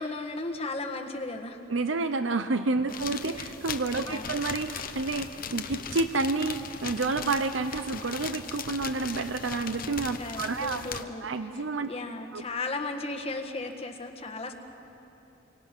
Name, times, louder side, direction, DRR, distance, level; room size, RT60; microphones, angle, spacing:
voice 1, 0.0-1.6 2.9-3.2 4.0-4.3 10.2-11.3 11.5-14.5, left 2 dB, 30° left, 4 dB, 1.5 m, -35 dB
voice 2, 1.7-10.8 11.2-11.9 12.3-12.4, right 3 dB, 85° right, 9 dB, 0.8 m, -29 dB
sound 1, 2.9-11.0, left 6 dB, 50° left, 1.0 m, -38 dB
28.0 x 24.0 x 6.1 m, 3.0 s
head